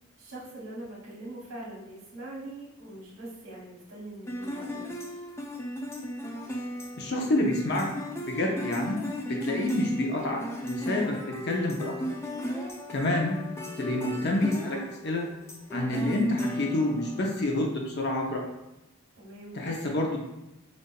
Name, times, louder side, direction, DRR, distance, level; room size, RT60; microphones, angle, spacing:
voice 1, 0.2-4.9 19.1-19.6, right 1 dB, 85° right, -6 dB, 1.1 m, -42 dB
sound 1, 4.3-17.5, left 1 dB, 15° left, 0.4 m, -36 dB
voice 2, 7.0-7.9 8.3-9.0 9.3-11.2 11.4-11.9 12.9-13.4 13.8-15.3 15.7-18.4 19.5-20.2, left 1 dB, 55° left, 0 dB, 0.7 m, -28 dB
5.2 x 2.5 x 2.2 m, 0.96 s
head